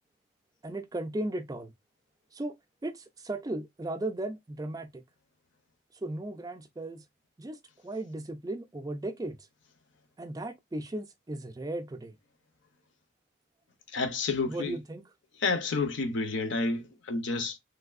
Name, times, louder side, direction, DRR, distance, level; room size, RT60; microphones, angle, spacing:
voice 1, 0.6-1.7 2.3-2.6 2.8-5.0 6.0-7.0 7.4-7.6 7.8-9.4 10.2-12.1 14.5-15.1, right 1 dB, 20° right, 0.3 m, -36 dB
voice 2, 13.9-14.8 15.4-17.6, left 3 dB, 70° left, 0.6 m, -30 dB
3.2 x 2.6 x 2.3 m
head